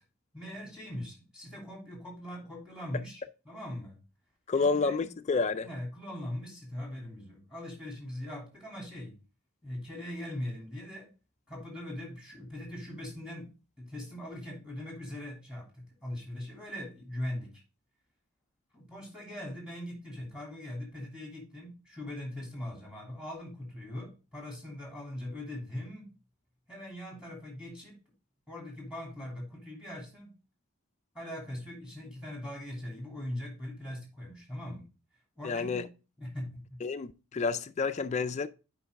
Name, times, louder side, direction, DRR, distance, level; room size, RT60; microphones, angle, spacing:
voice 1, 0.3-4.0 4.5-5.1 5.6-9.1 9.6-11.1 11.5-13.5 13.8-17.5 18.7-26.0 26.7-27.9 28.5-30.3 31.1-34.9 35.4-35.9 36.2-36.8, left 1 dB, 5° right, 2.9 m, -41 dB
voice 2, 4.5-5.7 35.4-35.8 36.8-38.5, left 4 dB, 30° left, 0.3 m, -29 dB
8.2 x 5.3 x 3.5 m
head